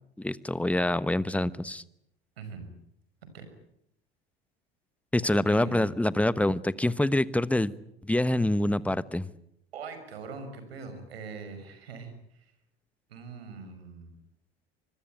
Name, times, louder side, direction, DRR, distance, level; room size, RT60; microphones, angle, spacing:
voice 1, 0.2-1.8 5.1-7.7 8.0-9.3, left 1 dB, 5° left, 17 dB, 1.1 m, -26 dB
voice 2, 5.2-5.9 8.7-8.9 9.7-12.5 13.1-14.2, right 4 dB, 80° right, 9 dB, 5.9 m, -42 dB
25.0 x 21.5 x 9.2 m, 0.76 s
hypercardioid pair, 70°, 30 cm